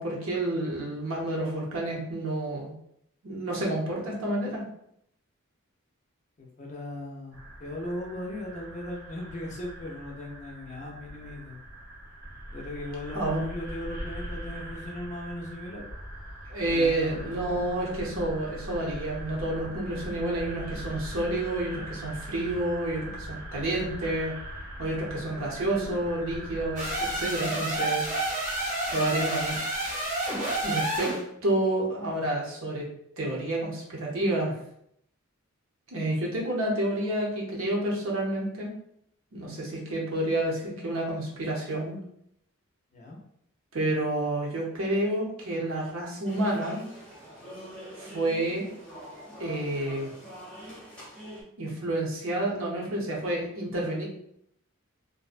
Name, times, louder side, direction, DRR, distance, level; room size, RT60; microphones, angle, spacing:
voice 1, 0.0-2.7 3.2-4.6 13.1-13.4 16.5-24.3 24.8-28.1 28.9-29.7 30.6-31.1 31.4-32.8 33.2-34.5 35.9-38.7 39.3-42.0 43.7-46.8 48.0-48.6 49.4-50.1 51.6-54.0, right 1 dB, 70° right, -3 dB, 0.7 m, -29 dB
voice 2, 6.4-11.6 12.5-15.8 16.7-17.6 42.9-43.2, left 1 dB, 35° left, -1 dB, 0.4 m, -38 dB
sound 1, 7.3-27.3, right 1 dB, 85° right, 1.2 m, -41 dB
sound 2, 26.8-31.2, right 1 dB, 35° right, 0.7 m, -29 dB
sound 3, 46.2-51.4, equal, 5° left, 0.8 m, -44 dB
2.6 x 2.1 x 2.4 m, 0.72 s
head